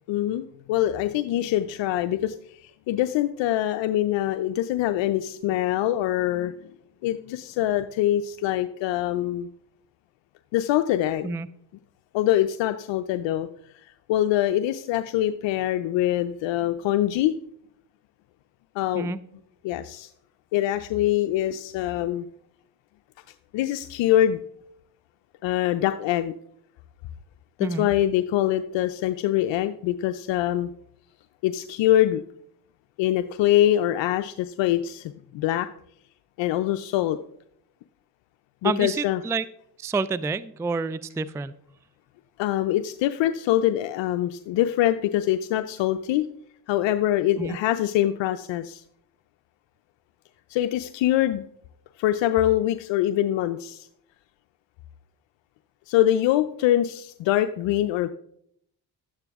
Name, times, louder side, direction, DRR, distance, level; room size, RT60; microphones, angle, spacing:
voice 1, 0.1-6.7 7.0-9.5 10.5-11.3 12.1-13.5 14.1-17.3 18.7-19.1 19.6-20.1 20.5-22.3 23.5-24.4 25.4-26.3 27.6-30.7 31.4-32.2 33.0-35.7 36.4-37.2 38.6-39.2 42.4-46.3 46.7-48.8 50.5-51.4 52.0-53.9 55.9-58.1, left 13 dB, 75° left, 10 dB, 0.6 m, -24 dB
voice 2, 38.6-39.4 39.8-41.5 47.4-47.6, right 4 dB, 5° right, 18 dB, 0.3 m, -28 dB
12.0 x 8.9 x 3.5 m, 0.70 s
supercardioid pair, 65°, 44 cm